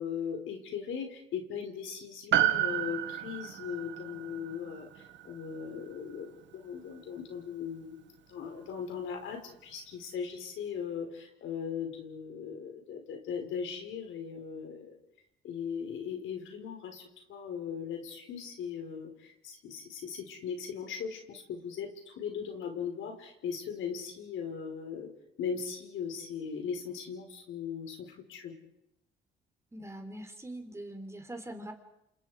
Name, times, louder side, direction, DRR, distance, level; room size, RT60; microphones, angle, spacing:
voice 1, 0.0-15.0 15.4-25.1 25.4-28.6, left 7 dB, 80° left, 4 dB, 4.8 m, -39 dB
Piano, 2.3-6.9 7.2-7.3, right 11 dB, 65° right, 1.8 m, -32 dB
voice 2, 29.7-31.7, right 1 dB, 15° right, 6 dB, 3.9 m, -42 dB
29.5 x 27.0 x 5.0 m, 0.83 s
cardioid pair, 90°, 20 cm